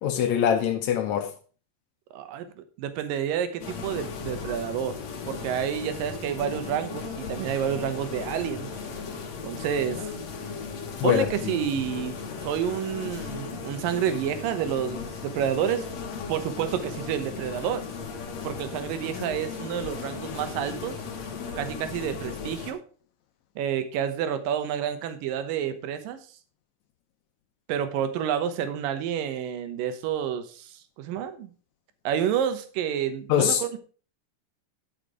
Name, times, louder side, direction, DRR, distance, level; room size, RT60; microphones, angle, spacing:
voice 1, 0.0-1.3 11.0-11.5 33.3-33.6, left 9 dB, 75° left, 1.7 m, -23 dB
voice 2, 2.1-5.0 5.3-8.7 9.4-10.1 11.0-12.2 12.4-15.9 16.3-17.9 18.4-21.0 21.6-22.8 23.6-26.2 27.7-31.5 32.0-33.8, right 9 dB, 75° right, 2.6 m, -29 dB
sound 1, 3.6-22.7, left 5 dB, 55° left, 2.6 m, -37 dB
12.0 x 5.8 x 4.9 m
omnidirectional pair, 4.2 m